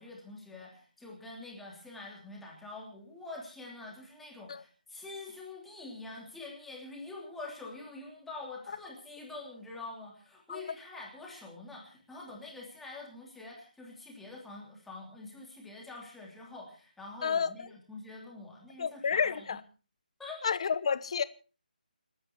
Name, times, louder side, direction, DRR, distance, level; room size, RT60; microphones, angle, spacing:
voice 1, 0.0-19.5 20.2-20.4, left 2 dB, 5° left, 3.1 m, -46 dB
voice 2, 17.2-17.7 18.8-19.6 20.4-21.2, left 6 dB, 40° left, 1.1 m, -30 dB
29.5 x 10.5 x 4.6 m
hypercardioid pair, 170°, 5 cm